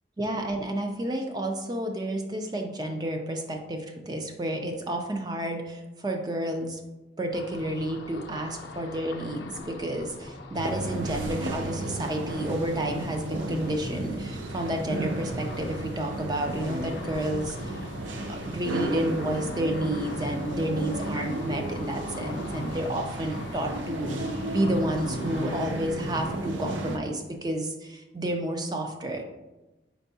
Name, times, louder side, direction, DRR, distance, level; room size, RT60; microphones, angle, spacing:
voice 1, 0.2-6.8 7.2-17.9 18.3-29.4, right 1 dB, 20° right, 3 dB, 0.4 m, -31 dB
Ocean, 7.3-25.6, left 3 dB, 80° left, 0.5 m, -44 dB
sound 1, 10.5-27.0, right 1 dB, 85° right, 0.5 m, -33 dB
4.5 x 4.4 x 2.7 m, 1.1 s
head